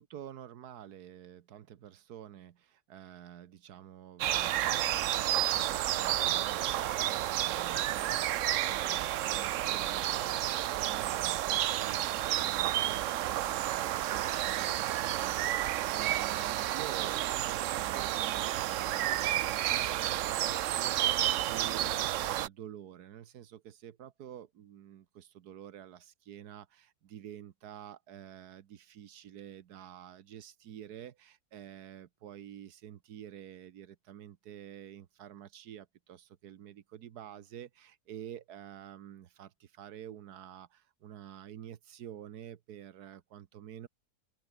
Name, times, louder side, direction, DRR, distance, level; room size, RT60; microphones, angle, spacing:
voice 1, 0.0-43.9, right 10 dB, 80° right, 1.5 m, -49 dB
sound 1, 4.2-22.5, right 13 dB, 65° right, 0.8 m, -31 dB
open air
omnidirectional pair, 1.7 m